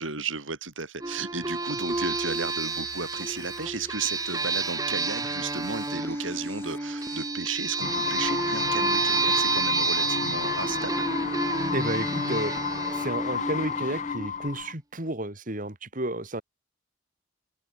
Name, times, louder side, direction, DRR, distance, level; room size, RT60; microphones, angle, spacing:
voice 1, 0.0-11.1, right 4 dB, 80° right, 3.4 m, -34 dB
sound 1, 1.0-14.2, right 3 dB, 20° right, 1.9 m, -30 dB
sound 2, 1.9-7.3, left 2 dB, 10° left, 5.8 m, -49 dB
sound 3, 7.8-14.7, left 6 dB, 35° left, 0.5 m, -31 dB
voice 2, 11.7-12.6 12.9-16.4, right 1 dB, 40° right, 3.3 m, -31 dB
head